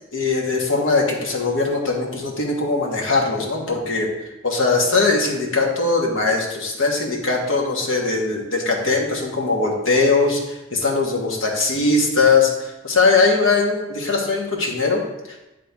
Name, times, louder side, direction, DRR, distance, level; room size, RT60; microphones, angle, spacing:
voice 1, 0.1-15.4, left 3 dB, 90° left, -1 dB, 1.4 m, -20 dB
9.7 x 3.6 x 3.5 m, 0.99 s
head